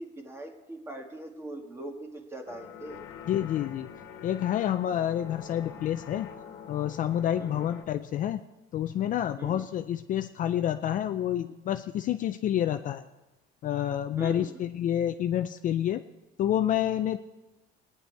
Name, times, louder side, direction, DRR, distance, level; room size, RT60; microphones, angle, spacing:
voice 1, 0.0-3.0 7.4-7.6 9.4-9.7 14.2-14.6, right 1 dB, 10° right, 2 dB, 1.6 m, -41 dB
sound 1, 2.5-7.8, left 7 dB, 60° left, 1.4 m, -45 dB
voice 2, 3.3-3.9 4.2-6.3 6.7-8.4 8.7-13.0 13.6-16.0 16.4-17.2, left 11 dB, 40° left, 9 dB, 0.4 m, -28 dB
20.5 x 9.8 x 4.5 m, 1.1 s
cardioid pair, 155°, 21 cm